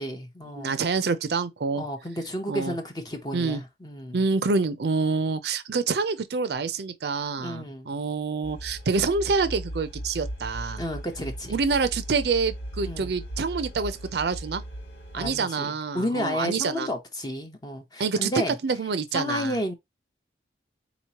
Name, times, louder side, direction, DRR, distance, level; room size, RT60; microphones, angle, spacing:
voice 1, 0.0-0.8 1.7-4.2 7.4-7.9 10.8-11.6 12.8-13.1 15.2-18.5 19.1-19.7, equal, 20° left, 0.7 m, -32 dB
voice 2, 0.6-1.8 2.5-2.7 3.3-3.6 4.1-10.8 11.5-14.6 15.1-16.9 18.0-18.3 18.6-19.6, right 4 dB, 65° right, 0.5 m, -27 dB
sound 1, 8.4-15.4, right 1 dB, 75° left, 1.6 m, -37 dB
4.1 x 2.9 x 2.8 m
head